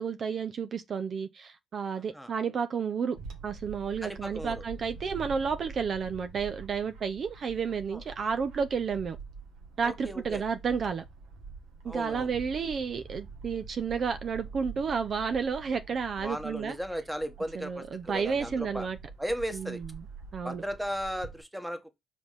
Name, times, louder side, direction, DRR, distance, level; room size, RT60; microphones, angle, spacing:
voice 1, 0.0-3.2 3.4-9.2 9.8-11.0 11.8-16.7 17.6-19.0 19.5-19.8 20.3-20.6, right 6 dB, 50° right, 0.6 m, -31 dB
voice 2, 2.0-2.3 4.0-4.6 7.9-8.0 9.8-10.4 11.8-12.3 16.2-18.9 19.2-19.8 20.4-21.9, equal, 5° right, 1.3 m, -36 dB
Bird / Wind, 3.2-21.4, right 4 dB, 90° right, 1.5 m, -46 dB
5.1 x 3.8 x 5.1 m
cardioid pair, 90°, 0 cm